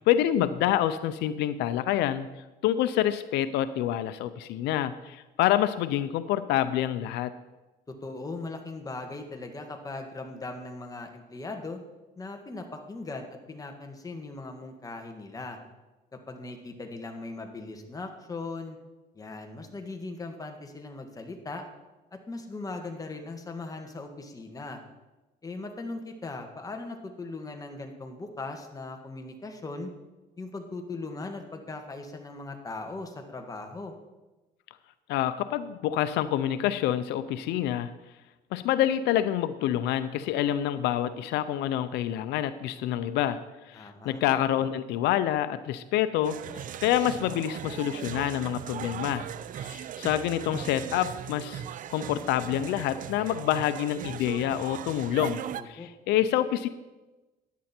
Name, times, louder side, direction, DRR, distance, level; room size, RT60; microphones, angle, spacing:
voice 1, 0.0-2.3 2.6-7.3 35.1-37.9 38.5-43.4 43.7-49.3 49.6-51.6 51.9-56.7, left 11 dB, 85° left, 12 dB, 0.6 m, -27 dB
voice 2, 8.0-11.8 12.2-15.6 16.3-18.8 19.1-21.6 22.3-24.8 25.4-29.9 30.4-33.9 43.7-44.2 55.6-55.9, left 3 dB, 20° left, 4 dB, 1.8 m, -39 dB
sound 1, 46.2-55.6, right 10 dB, 55° right, 0.6 m, -38 dB
15.5 x 10.5 x 4.4 m, 1.1 s
cardioid pair, 110°, 17 cm